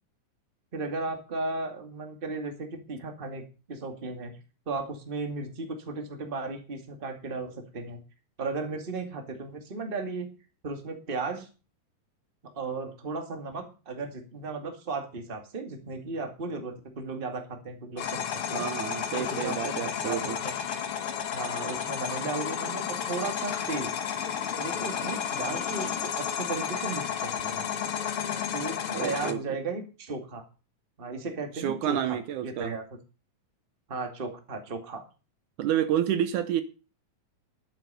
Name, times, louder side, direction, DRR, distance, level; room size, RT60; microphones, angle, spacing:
voice 1, 0.7-4.3 4.7-8.0 8.4-10.3 10.6-11.5 12.4-18.7 19.2-20.5 21.3-23.9 24.6-27.7 28.5-30.4 31.0-32.8 33.9-35.0, right 3 dB, 20° right, 1.9 m, -35 dB
sound 1, 18.0-29.3, left 8 dB, 55° left, 1.8 m, -32 dB
voice 2, 18.5-20.4 28.9-29.4 31.5-32.8 35.6-36.6, right 10 dB, 75° right, 2.3 m, -29 dB
11.5 x 9.2 x 6.9 m
omnidirectional pair, 3.8 m